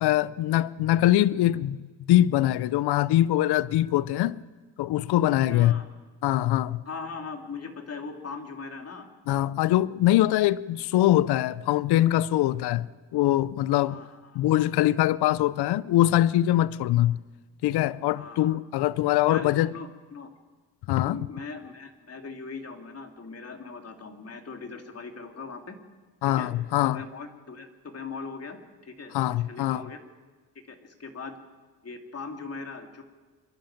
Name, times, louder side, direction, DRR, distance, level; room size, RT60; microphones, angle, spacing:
voice 1, 0.0-4.4 4.8-5.7 6.2-6.8 9.3-12.9 13.1-14.0 14.4-17.2 17.6-19.7 20.9-21.2 26.2-27.0 29.1-29.8, left 14 dB, 65° left, 0.7 m, -23 dB
voice 2, 5.4-5.9 6.8-9.1 13.9-14.4 18.2-18.6 19.3-20.3 21.0-25.8 26.2-26.5 26.8-28.6 28.8-30.0 30.7-31.4 31.8-33.0, left 4 dB, 35° left, 2.9 m, -40 dB
26.5 x 11.5 x 8.9 m
supercardioid pair, 80°, 42 cm